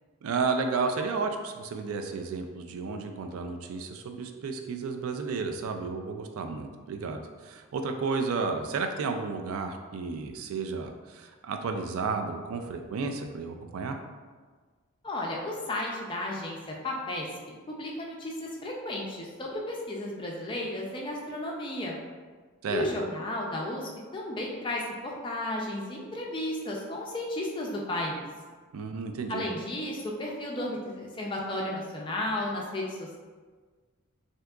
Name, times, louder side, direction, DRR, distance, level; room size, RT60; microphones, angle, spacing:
voice 1, 0.2-14.0 22.6-22.9 28.7-29.4, right 4 dB, 75° right, 5 dB, 0.3 m, -32 dB
voice 2, 15.0-22.0 22.7-28.2 29.3-33.2, left 1 dB, 20° left, -2 dB, 0.4 m, -33 dB
3.5 x 2.7 x 2.3 m, 1.4 s
head